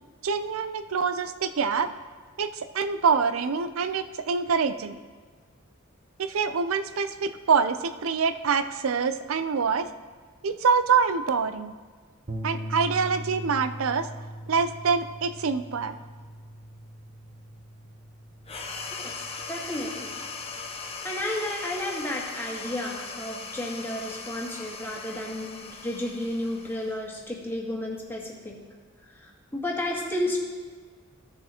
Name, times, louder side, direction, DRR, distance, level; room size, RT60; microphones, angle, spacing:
voice 1, 0.2-1.9 2.4-5.0 6.2-9.9 10.4-11.7 12.4-14.1 14.5-16.0, right 5 dB, 75° right, 11 dB, 0.5 m, -25 dB
sound 1, 12.3-20.7, equal, 40° right, 0.8 m, -40 dB
sound 2, 18.5-27.3, left 4 dB, 30° left, 0.8 m, -39 dB
voice 2, 19.0-20.2 21.0-28.6 29.2-30.4, left 1 dB, 10° left, -3 dB, 1.7 m, -32 dB
16.0 x 6.4 x 2.9 m, 1.5 s
head